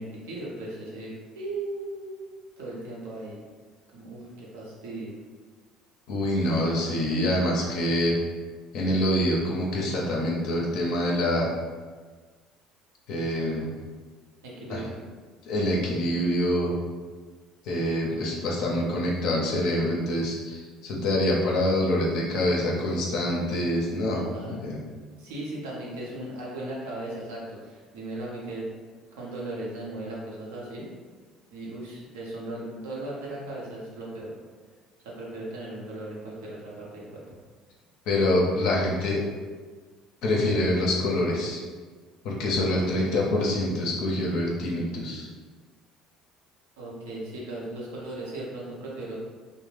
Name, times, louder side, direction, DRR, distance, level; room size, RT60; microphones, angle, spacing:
voice 1, 0.0-2.2 2.6-3.4 3.9-5.2 14.4-14.9 24.1-24.7 25.2-28.7 29.2-30.9 31.5-34.3 35.0-37.2 42.7-43.1 46.8-49.2, right 2 dB, 90° right, -4 dB, 0.7 m, -37 dB
voice 2, 6.1-8.2 8.7-11.5 13.1-13.7 14.7-14.8 15.5-16.7 17.6-24.8 38.1-39.2 40.2-41.6 42.2-45.3, left 1 dB, 70° left, -3 dB, 0.5 m, -25 dB
2.4 x 2.0 x 3.2 m, 1.5 s
supercardioid pair, 85°, 0 cm